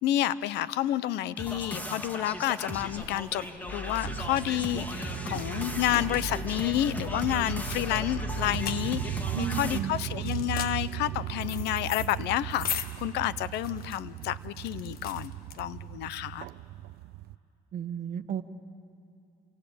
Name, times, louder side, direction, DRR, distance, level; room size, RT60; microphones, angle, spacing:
voice 1, 0.0-15.3 15.6-16.5, left 13 dB, 85° left, 17 dB, 0.8 m, -30 dB
sound 1, 1.4-9.8, left 1 dB, 10° left, 2.3 m, -37 dB
sound 2, 2.3-16.1, left 8 dB, 65° left, 1.5 m, -42 dB
sound 3, 4.0-17.3, right 15 dB, 75° right, 0.6 m, -37 dB
voice 2, 9.3-10.2 17.7-18.4, right 8 dB, 50° right, 10 dB, 1.3 m, -34 dB
28.5 x 24.0 x 8.6 m, 2.7 s
cardioid pair, 110°, 17 cm